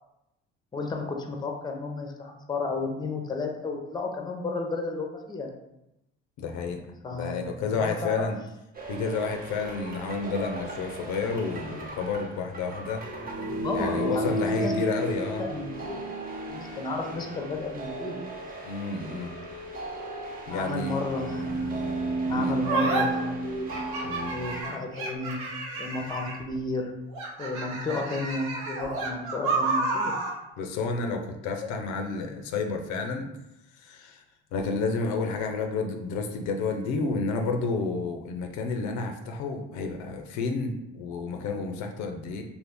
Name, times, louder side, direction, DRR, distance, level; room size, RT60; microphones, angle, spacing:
voice 1, 0.7-5.5 7.0-7.5 7.8-8.3 13.5-14.3 14.6-14.7 15.2-16.1 16.5-18.2 20.5-21.7 22.3-23.8 24.3-25.4 25.8-26.9 27.4-30.1, left 3 dB, 15° left, 3 dB, 0.6 m, -32 dB
voice 2, 6.4-6.8 7.1-8.4 8.9-13.0 13.7-15.5 16.7-16.8 18.6-19.3 20.5-21.0 22.3-22.5 24.0-24.4 30.6-33.3 33.7-34.2 34.5-42.4, left 4 dB, 75° left, 4 dB, 0.5 m, -30 dB
sound 1, 8.8-24.6, right 2 dB, 30° right, 0.7 m, -34 dB
sound 2, 22.6-23.0 23.7-26.5 27.1-30.4, right 3 dB, 80° right, 0.9 m, -30 dB
2.5 x 2.5 x 3.4 m, 0.88 s
supercardioid pair, 75°, 29 cm